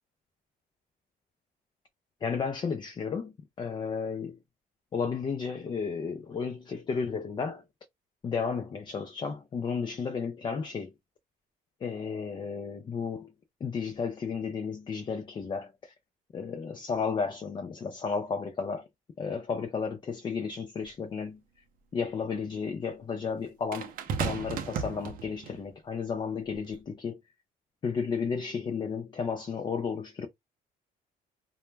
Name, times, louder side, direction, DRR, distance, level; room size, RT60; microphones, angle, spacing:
voice 1, 2.2-4.4 4.9-7.6 8.2-10.9 11.8-13.3 13.6-15.9 16.3-18.9 19.2-21.4 21.9-23.9 24.2-27.2 27.8-30.3, left 5 dB, 30° left, 0.3 m, -33 dB
sound 1, 20.8-20.9 23.7-25.6 26.5-26.7, right 6 dB, 55° right, 0.5 m, -34 dB
2.1 x 2.1 x 3.1 m
cardioid pair, 110°, 17 cm